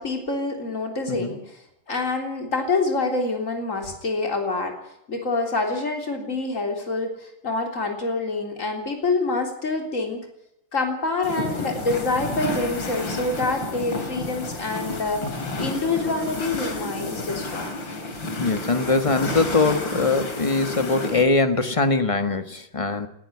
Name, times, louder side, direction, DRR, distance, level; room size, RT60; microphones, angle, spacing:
voice 1, 0.0-1.6 1.9-4.8 5.1-10.2 10.7-17.8, left 3 dB, 40° left, 3 dB, 3.9 m, -26 dB
sound 1, 11.2-21.2, left 2 dB, 80° left, 3.8 m, -31 dB
voice 2, 15.2-15.5 18.4-23.1, left 3 dB, 20° left, 8 dB, 1.3 m, -22 dB
20.0 x 14.0 x 9.6 m, 0.78 s
omnidirectional pair, 2.0 m